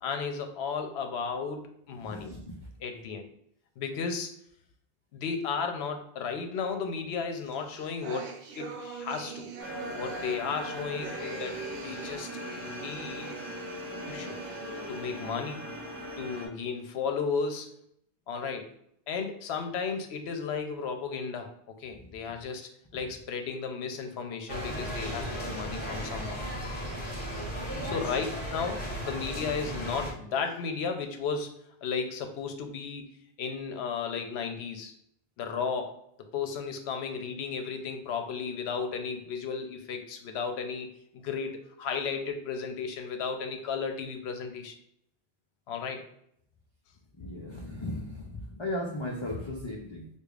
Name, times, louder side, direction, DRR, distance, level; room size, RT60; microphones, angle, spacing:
voice 1, 0.0-2.3 2.8-3.3 3.8-4.3 5.1-9.5 9.9-13.4 14.1-14.4 14.9-15.7 16.2-17.8 18.3-18.7 19.1-26.4 27.8-28.2 28.5-31.6 31.8-34.9 35.4-44.7 45.7-46.1, left 5 dB, 70° left, 5 dB, 0.8 m, -34 dB
voice 2, 2.0-2.7 22.0-22.2 27.7-28.1 47.1-50.1, left 1 dB, 50° left, -2 dB, 0.3 m, -37 dB
sound 1, 7.4-15.3, right 5 dB, 65° right, 0.7 m, -42 dB
sound 2, 9.6-16.5, left 1 dB, 25° right, 0.5 m, -40 dB
sound 3, 24.5-30.1, equal, 30° left, 0.9 m, -35 dB
4.8 x 2.3 x 2.4 m, 0.71 s
omnidirectional pair, 1.1 m